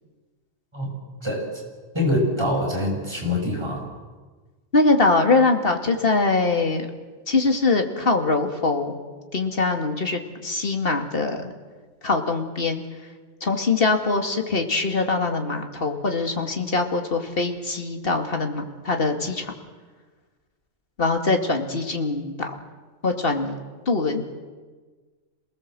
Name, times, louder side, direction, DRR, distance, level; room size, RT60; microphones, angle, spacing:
voice 1, 1.9-3.9, left 1 dB, 20° right, 0 dB, 6.3 m, -24 dB
voice 2, 4.7-6.9 7.3-9.0 9.3-11.5 12.0-12.8 13.4-19.5 21.0-22.6 23.0-23.6 23.9-24.2, left 3 dB, 45° left, 5 dB, 2.5 m, -23 dB
28.0 x 19.5 x 7.6 m, 1.4 s
omnidirectional pair, 1.4 m